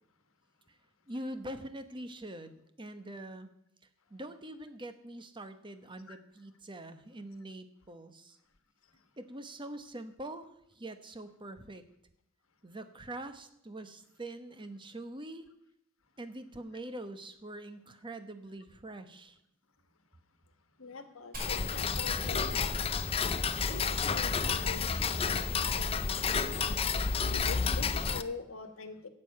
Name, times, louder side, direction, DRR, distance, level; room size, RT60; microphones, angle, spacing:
voice 1, 1.1-3.5 4.1-8.4 9.2-10.5 10.7-11.8 12.6-15.5 16.2-19.3, right 1 dB, 25° right, 9 dB, 1.0 m, -44 dB
voice 2, 20.8-22.9 23.6-24.9 25.2-26.9 27.3-29.1, left 4 dB, 75° left, 8 dB, 1.4 m, -44 dB
Fire, 21.3-25.0, right 1 dB, 45° right, 5.2 m, -51 dB
Tick-tock, 21.4-28.2, left 5 dB, 30° left, 0.5 m, -30 dB
11.5 x 7.7 x 8.4 m, 0.78 s
head